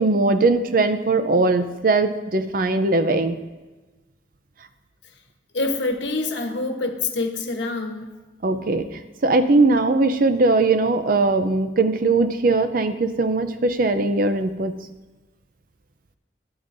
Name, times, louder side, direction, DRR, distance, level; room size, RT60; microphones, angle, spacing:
voice 1, 0.0-3.4 8.4-14.8, right 3 dB, 50° right, 9 dB, 0.5 m, -20 dB
voice 2, 5.5-8.1, left 3 dB, 80° left, 4 dB, 1.1 m, -26 dB
12.5 x 8.9 x 2.6 m, 1.2 s
head